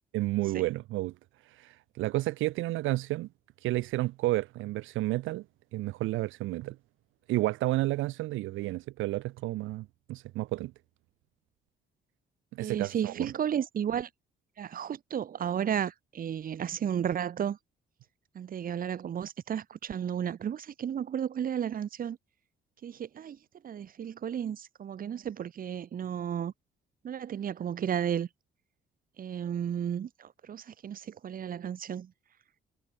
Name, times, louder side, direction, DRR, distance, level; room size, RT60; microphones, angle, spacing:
voice 1, 0.1-1.1 1.5-3.3 3.6-5.4 5.7-6.8 7.3-10.7 12.5-13.3, right 17 dB, 80° right, 0.5 m, -31 dB
voice 2, 12.6-14.1 14.6-17.6 18.3-22.2 22.8-23.4 23.6-26.5 27.0-28.3 29.2-32.1, right 9 dB, 45° right, 0.8 m, -33 dB
cardioid pair, 90°, 20 cm